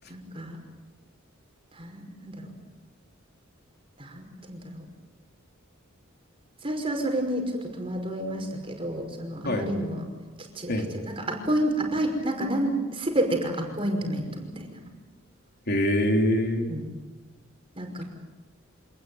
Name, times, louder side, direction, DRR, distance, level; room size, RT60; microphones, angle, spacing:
voice 1, 0.1-0.6 1.7-2.5 4.0-4.8 6.6-10.0 10.4-10.7 11.1-14.8 16.7-16.8 17.7-18.0, right 1 dB, 25° right, 3 dB, 5.5 m, -30 dB
voice 2, 15.7-16.7, left 1 dB, 50° left, 3 dB, 3.6 m, -24 dB
27.0 x 20.0 x 9.5 m, 1.2 s
head